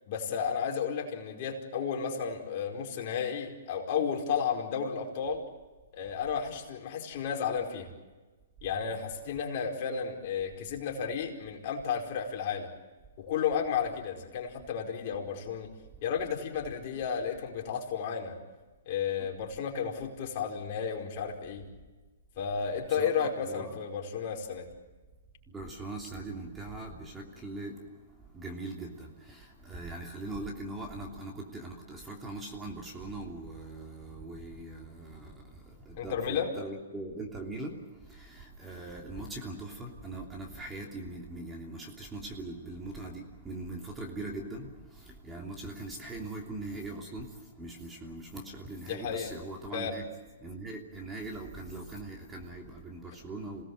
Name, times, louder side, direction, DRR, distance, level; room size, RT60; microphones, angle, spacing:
voice 1, 0.1-5.4 5.9-7.9 8.6-12.7 13.2-15.7 16.0-18.4 18.9-21.6 22.4-24.7 36.0-36.5 48.9-49.3 49.7-50.0, left 7 dB, 45° left, 0 dB, 4.8 m, -33 dB
voice 2, 23.0-23.8 25.5-27.8 28.3-50.0 50.4-53.6, right 2 dB, 10° right, 0 dB, 3.1 m, -41 dB
27.5 x 18.5 x 8.0 m, 1.2 s
hypercardioid pair, 145°, 0 cm